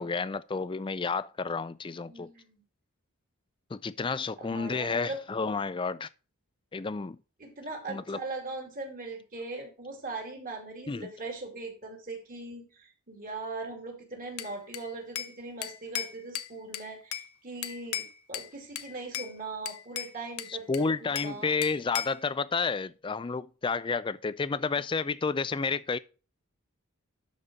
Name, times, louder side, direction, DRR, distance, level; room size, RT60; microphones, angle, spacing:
voice 1, 0.0-2.3 3.7-6.1 6.7-7.2 7.9-8.2 10.9-11.1 20.5-26.0, left 4 dB, 20° left, 0.3 m, -31 dB
voice 2, 2.1-2.6 4.4-5.2 7.4-21.5, right 3 dB, 40° right, 2.5 m, -40 dB
Bell / Glass, 14.4-15.4 15.6-17.3 17.6-18.5 18.8-19.3 19.7-21.4 21.6-22.2, left 10 dB, 90° left, 0.7 m, -37 dB
12.0 x 4.2 x 5.0 m
head